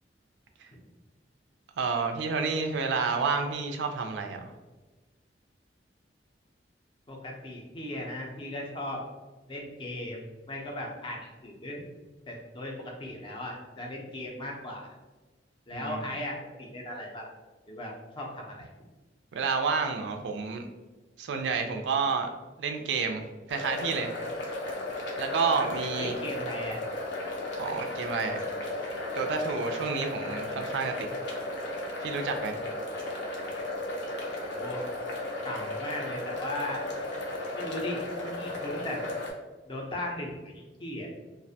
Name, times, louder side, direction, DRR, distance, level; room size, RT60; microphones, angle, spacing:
voice 1, 1.8-4.5 15.7-16.0 19.3-20.7 21.2-22.3 22.6-23.2 23.5-24.1 25.2-26.2 27.6-28.4 29.2-30.9 32.0-32.6, right 5 dB, 75° right, 5 dB, 0.3 m, -29 dB
voice 2, 7.1-9.0 9.5-10.2 10.5-11.8 12.3-14.9 15.7-17.3 17.7-18.7 26.0-26.8 34.3-34.8 35.4-36.8 37.5-39.1 39.7-41.1, left 1 dB, 30° left, 0 dB, 0.4 m, -37 dB
sound 1, 23.5-39.3, left 1 dB, 85° left, 0.6 m, -35 dB
2.4 x 2.1 x 2.6 m, 1.2 s
head